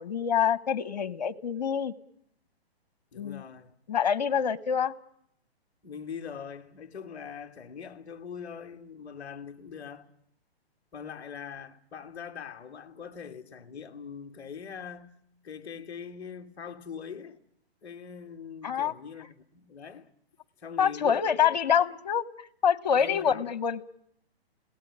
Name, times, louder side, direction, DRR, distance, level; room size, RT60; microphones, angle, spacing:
voice 1, 0.0-1.9 3.1-3.4 3.9-4.9 18.6-18.9 20.8-23.8, left 8 dB, 40° left, 1.1 m, -26 dB
voice 2, 3.1-3.7 5.8-10.1 10.9-15.1 15.4-17.4 17.8-20.1 20.6-21.6 23.0-23.5, left 7 dB, 10° left, 0.9 m, -42 dB
21.5 x 18.0 x 9.3 m
hypercardioid pair, 175°, 32 cm